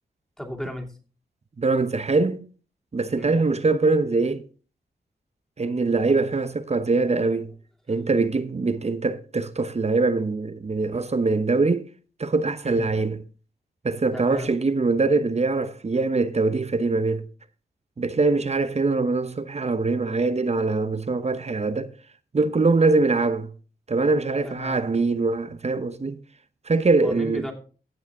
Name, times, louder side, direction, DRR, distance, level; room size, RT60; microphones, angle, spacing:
voice 1, 0.4-1.0 3.2-3.4 12.6-12.9 14.1-14.5 24.4-24.8 27.0-27.5, left 1 dB, 5° left, 2.7 m, -35 dB
voice 2, 1.6-2.5 2.9-4.4 5.6-7.5 7.9-11.9 12.2-13.2 13.8-17.2 18.0-21.9 22.3-23.5 23.9-26.2 26.7-27.5, right 3 dB, 40° right, 0.9 m, -23 dB
16.0 x 6.3 x 3.6 m
cardioid pair, 55°, 18 cm